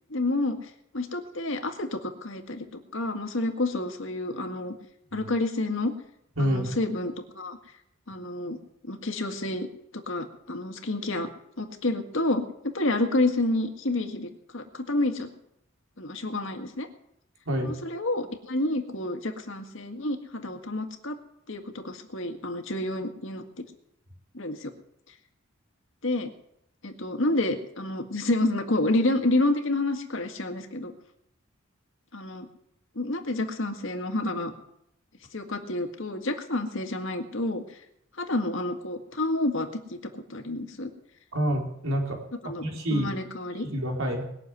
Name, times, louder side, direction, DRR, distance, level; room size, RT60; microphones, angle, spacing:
voice 1, 0.1-2.7 2.9-4.7 5.1-5.9 6.4-7.6 8.1-8.6 8.8-9.7 9.9-11.3 11.6-15.3 16.0-16.9 17.6-21.2 21.5-23.4 24.3-24.7 26.0-26.3 26.8-30.9 32.1-32.5 33.0-34.5 35.3-37.6 38.2-40.0 40.3-40.9 42.4-43.7, left 2 dB, 70° left, 6 dB, 1.9 m, -29 dB
voice 2, 6.4-6.8 17.5-17.7 41.3-42.2 42.4-43.1 43.6-44.2, equal, 90° right, 1 dB, 3.8 m, -27 dB
21.0 x 7.0 x 9.4 m, 0.78 s
head